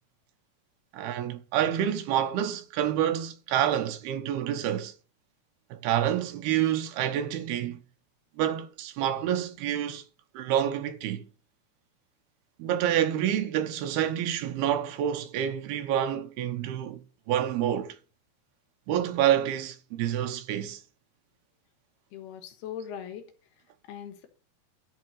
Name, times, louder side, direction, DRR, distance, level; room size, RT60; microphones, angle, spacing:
voice 1, 0.9-4.9 5.7-7.8 8.4-10.0 10.3-11.2 12.6-17.0 17.3-18.0 18.9-20.8, right 10 dB, 90° right, 3.0 m, -28 dB
voice 2, 22.1-23.3 23.9-24.3, left 9 dB, 85° left, 3.4 m, -40 dB
12.5 x 4.8 x 6.4 m
omnidirectional pair, 4.4 m